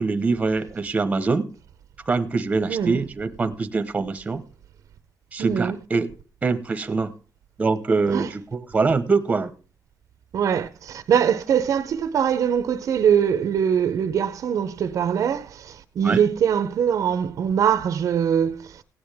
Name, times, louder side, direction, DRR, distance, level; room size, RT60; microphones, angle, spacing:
voice 1, 0.0-1.5 2.1-4.4 5.3-6.1 6.4-7.1 7.6-9.5 16.0-16.2, right 4 dB, 20° right, 1.0 m, -23 dB
voice 2, 2.7-3.0 5.4-5.8 8.1-8.3 10.3-18.8, right 8 dB, 55° right, 0.7 m, -22 dB
17.0 x 9.6 x 3.5 m
cardioid pair, 165°, 7 cm